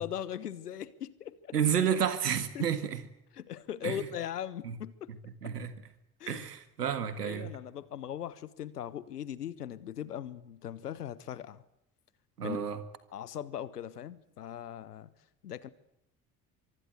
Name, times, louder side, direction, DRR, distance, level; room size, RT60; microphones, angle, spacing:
voice 1, 0.0-1.6 2.5-2.7 3.3-5.1 5.4-5.5 6.2-6.5 6.8-11.6 12.4-12.8 13.1-15.1 15.4-15.7, left 10 dB, 80° left, 1.2 m, -40 dB
voice 2, 1.5-3.0 3.8-4.1 4.6-4.8 5.4-5.7 6.3-7.5 12.4-12.8, right 8 dB, 80° right, 1.9 m, -30 dB
24.5 x 24.0 x 8.0 m
figure-of-eight pair, 60°, 46 cm